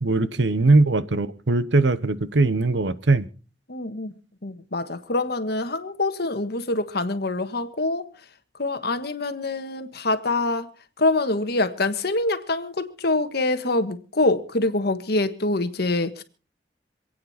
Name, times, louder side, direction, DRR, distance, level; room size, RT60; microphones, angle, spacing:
voice 1, 0.0-3.3, right 2 dB, 75° right, 1.0 m, -20 dB
voice 2, 3.7-4.1 4.4-8.1 8.6-10.7 11.0-16.2, left 2 dB, 60° left, 1.5 m, -25 dB
27.0 x 9.2 x 4.2 m
head